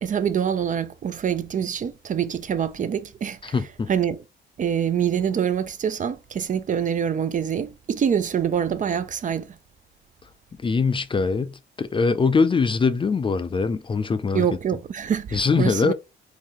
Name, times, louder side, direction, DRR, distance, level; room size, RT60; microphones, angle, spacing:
voice 1, 0.0-3.6 3.9-4.2 4.6-9.6 14.3-15.9, right 8 dB, 40° right, 0.5 m, -25 dB
voice 2, 3.4-3.9 10.6-14.5 15.3-15.9, left 4 dB, 25° left, 0.4 m, -22 dB
3.9 x 2.7 x 3.0 m
cardioid pair, 90°, 20 cm